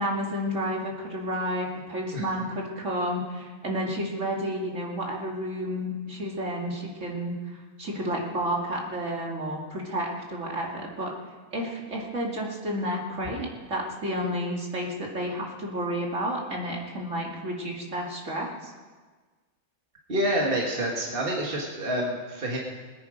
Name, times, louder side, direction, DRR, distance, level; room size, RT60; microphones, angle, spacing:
voice 1, 0.0-11.1 11.5-18.7, equal, 70° right, -1 dB, 2.7 m, -31 dB
voice 2, 20.1-22.6, right 1 dB, 45° right, -1 dB, 2.1 m, -27 dB
22.0 x 9.7 x 5.1 m, 1.4 s
omnidirectional pair, 1.4 m